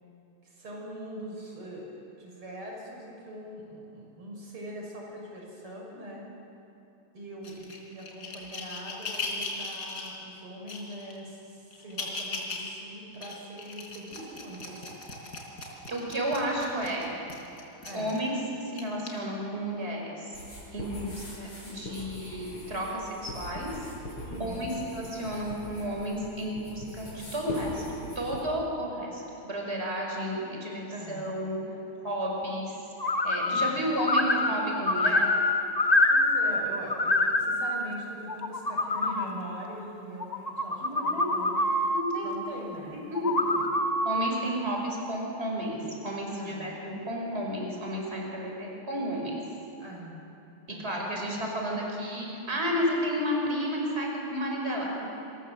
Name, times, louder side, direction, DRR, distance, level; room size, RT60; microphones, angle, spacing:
voice 1, 0.4-6.3 7.1-15.0 17.8-18.2 20.8-21.1 24.2-24.8 30.9-31.3 33.4-33.9 36.1-41.6 42.2-43.7 46.3-46.8 49.8-50.3 50.7-51.4, right 1 dB, 85° right, -2 dB, 6.8 m, -42 dB
sound 1, 7.4-10.1 10.7-11.2 11.7-12.7 13.1-18.3 18.8-19.1 19.8-19.9, left 3 dB, 50° left, 4.7 m, -38 dB
voice 2, 15.9-17.1 17.9-18.3 18.6-20.4 20.7-23.7 24.4-27.8 28.2-31.6 32.0-32.8 33.2-35.3 40.8-41.4 41.9-42.3 43.1-43.3 44.0-49.3 50.7-55.1, equal, 30° right, -1 dB, 5.7 m, -32 dB
sound 2, 20.3-28.4, left 1 dB, 80° left, 8.6 m, -42 dB
sound 3, 33.0-33.7 34.0-36.6 36.9-37.7 38.3-39.3 40.2-42.0 43.1-44.3, left 2 dB, 20° left, 1.2 m, -25 dB
27.5 x 27.5 x 7.7 m, 2.8 s
omnidirectional pair, 2.4 m